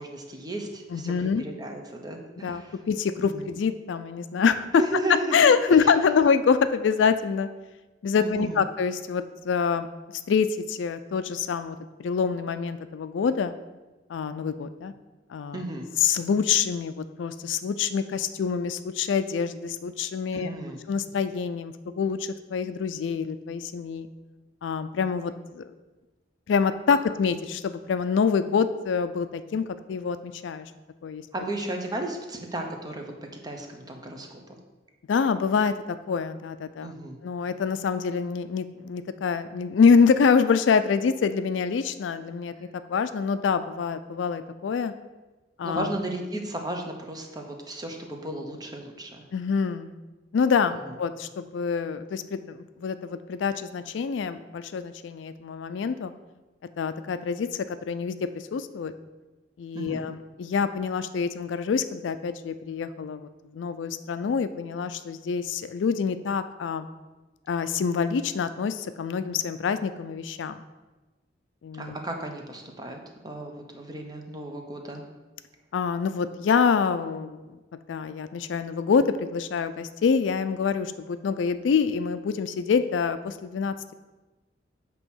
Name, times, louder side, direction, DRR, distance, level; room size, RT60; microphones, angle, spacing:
voice 1, 0.0-2.8 3.2-3.5 4.7-5.8 8.2-8.6 15.5-15.8 20.3-20.8 31.3-33.0 33.4-34.4 36.8-37.2 45.6-49.2 59.7-60.0 71.7-75.0, right 1 dB, 20° right, 2 dB, 0.9 m, -34 dB
voice 2, 0.9-1.4 2.4-4.8 5.1-7.5 8.0-9.9 10.3-13.5 14.1-14.9 15.3-15.6 16.0-20.5 20.9-24.1 24.6-25.6 26.5-30.7 31.0-31.2 35.1-36.9 37.2-44.9 45.6-45.9 49.3-49.9 50.3-56.1 56.8-58.9 59.6-66.9 67.5-70.6 71.6-72.0 75.7-77.4 77.9-83.9, left 6 dB, 75° left, 12 dB, 0.4 m, -26 dB
9.0 x 3.0 x 6.1 m, 1.2 s
head